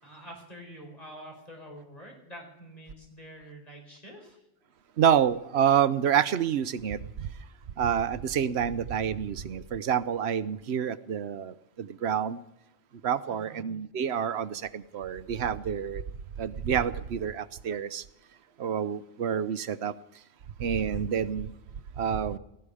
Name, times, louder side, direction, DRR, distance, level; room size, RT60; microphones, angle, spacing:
voice 1, 0.0-4.4 13.3-13.6, equal, 30° left, 5.1 m, -47 dB
voice 2, 5.0-7.0 7.8-12.4 13.0-16.0 16.4-18.0 18.6-19.9 20.6-21.5 22.0-22.4, right 8 dB, 65° right, 0.9 m, -28 dB
17.5 x 15.5 x 4.9 m
omnidirectional pair, 1.3 m